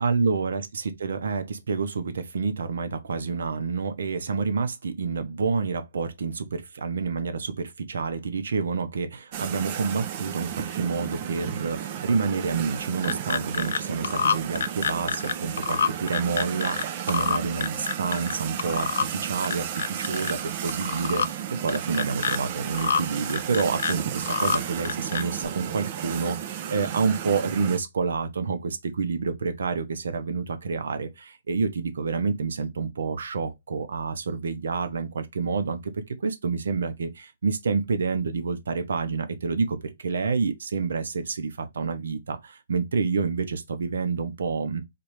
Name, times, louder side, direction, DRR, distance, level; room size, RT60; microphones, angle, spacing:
voice 1, 0.0-44.8, right 5 dB, 80° right, 0.9 m, -28 dB
sound 1, 9.3-27.8, right 10 dB, 35° right, 0.6 m, -34 dB
sound 2, 12.8-13.8 14.0-16.8 17.1-18.3 18.6-19.1 19.4-20.3 20.7-21.3 21.7-22.4 22.7-23.0 23.3-24.6 24.8-25.4, left 6 dB, 75° left, 0.4 m, -27 dB
4.3 x 3.1 x 3.2 m
hypercardioid pair, 160°, 0 cm